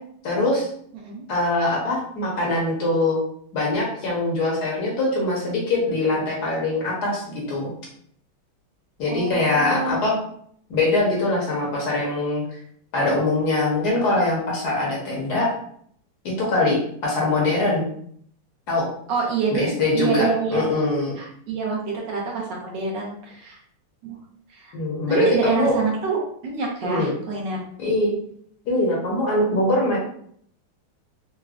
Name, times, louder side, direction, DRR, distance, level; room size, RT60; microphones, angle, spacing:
voice 1, 0.2-0.7 1.3-3.2 3.5-7.7 9.0-10.1 10.7-12.4 12.9-15.5 16.2-17.8 18.7-18.8 19.5-21.2 24.7-25.8 26.8-27.1 27.8-28.1 28.6-30.0, left 2 dB, 60° left, -3 dB, 1.3 m, -22 dB
voice 2, 9.1-10.0 19.1-20.6 21.2-23.6 24.0-24.2 24.5-24.7 25.1-27.6, right 4 dB, 70° right, -2 dB, 1.3 m, -26 dB
4.8 x 2.1 x 2.3 m, 0.64 s
omnidirectional pair, 2.2 m